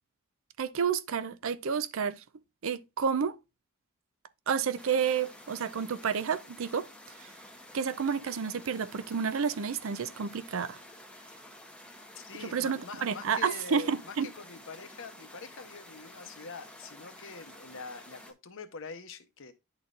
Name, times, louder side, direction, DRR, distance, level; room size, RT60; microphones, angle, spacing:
voice 1, 0.6-2.2 2.6-3.4 4.5-6.9 7.2-7.3 7.7-10.8 12.4-14.3, right 6 dB, 65° right, 0.5 m, -30 dB
sound 1, 4.8-18.3, left 1 dB, 5° left, 0.8 m, -51 dB
voice 2, 12.1-19.5, left 4 dB, 65° left, 0.8 m, -45 dB
10.5 x 4.0 x 2.4 m
head